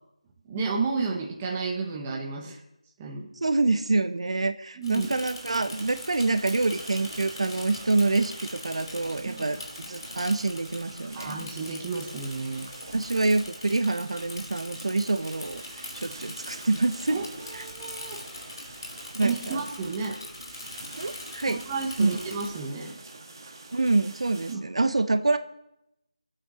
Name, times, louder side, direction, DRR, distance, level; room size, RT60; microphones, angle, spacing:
voice 1, 0.5-2.6 3.0-3.3 4.8-5.1 9.2-9.5 11.1-12.7 17.1-18.2 19.2-20.2 21.5-23.0 24.5-24.6, right 4 dB, 10° right, -1 dB, 1.0 m, -32 dB
voice 2, 3.4-9.6 9.9-11.3 12.9-15.6 15.9-17.2 17.5-17.6 19.1-19.6 21.0-21.6 22.0-22.2 23.7-25.4, right 3 dB, 55° right, 9 dB, 1.0 m, -26 dB
Bicycle / Mechanisms, 4.8-22.5, left 2 dB, 40° left, 2.6 m, -43 dB
sound 1, 5.0-24.6, right 3 dB, 35° right, 1.7 m, -46 dB
22.5 x 8.6 x 5.0 m, 0.82 s
figure-of-eight pair, 175°, 4 cm